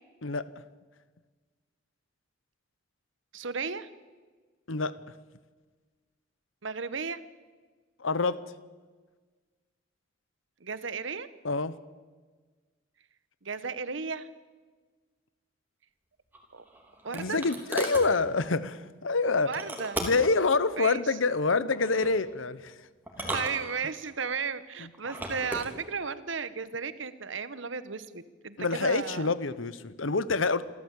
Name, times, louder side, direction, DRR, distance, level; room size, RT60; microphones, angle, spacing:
voice 1, 3.3-3.9 6.6-7.2 10.6-11.3 13.4-14.3 16.5-16.6 17.0-17.4 19.4-20.0 20.8-21.2 23.2-29.3, right 5 dB, 70° right, 1.1 m, -34 dB
voice 2, 8.0-8.5 11.4-11.8 17.1-19.5 20.0-22.7 23.2-23.3 24.8-24.9 28.6-30.6, left 3 dB, 80° left, 0.9 m, -27 dB
sound 1, 16.3-18.1 19.5-20.4 21.7-22.1 23.1-24.1 24.9-25.7, right 1 dB, 10° right, 3.2 m, -36 dB
27.5 x 13.5 x 8.3 m
head